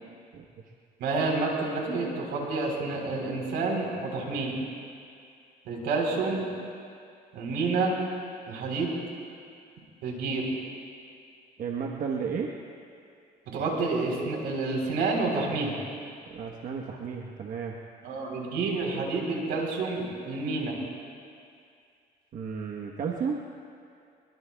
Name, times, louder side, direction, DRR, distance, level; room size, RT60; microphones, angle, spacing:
voice 1, 1.0-4.6 5.7-6.4 7.3-7.9 8.5-8.9 10.0-10.5 13.5-15.8 18.0-20.8, right 3 dB, 85° right, -1 dB, 3.9 m, -29 dB
voice 2, 11.6-12.5 16.3-17.8 22.3-23.4, right 6 dB, 55° right, 0 dB, 1.2 m, -33 dB
23.5 x 22.5 x 2.4 m, 2.4 s
cardioid pair, 110°, 17 cm